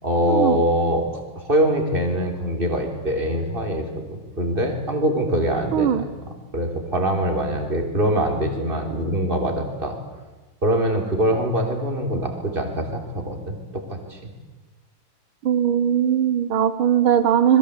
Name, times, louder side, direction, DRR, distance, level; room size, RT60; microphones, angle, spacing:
voice 1, 0.0-6.0 6.5-10.0 10.6-14.3, right 1 dB, 25° right, 4 dB, 3.7 m, -23 dB
voice 2, 5.7-6.0 15.4-17.6, right 9 dB, 85° right, 12 dB, 1.9 m, -19 dB
26.0 x 21.0 x 8.2 m, 1.2 s
omnidirectional pair, 2.2 m